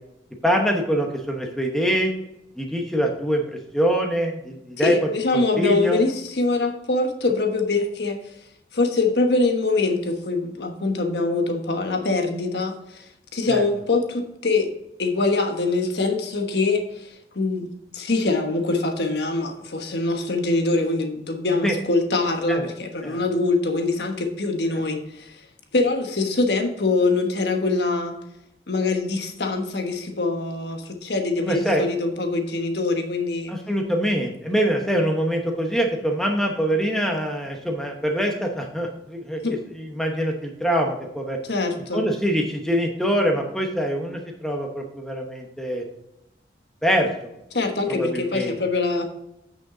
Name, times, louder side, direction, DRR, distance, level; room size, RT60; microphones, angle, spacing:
voice 1, 0.4-2.1 2.6-5.0 5.3-6.0 13.5-13.6 21.6-21.7 22.5-22.6 23.0-23.2 31.4-31.8 33.5-39.4 39.7-41.4 41.9-45.8 46.8-47.3 47.9-48.5, equal, 5° left, 1 dB, 0.9 m, -24 dB
voice 2, 4.8-8.2 8.7-13.0 13.3-14.7 15.0-25.3 25.7-28.2 28.7-33.5 39.4-39.6 41.4-42.1 47.5-49.0, left 3 dB, 75° left, 4 dB, 1.3 m, -24 dB
8.7 x 6.3 x 3.8 m, 0.82 s
head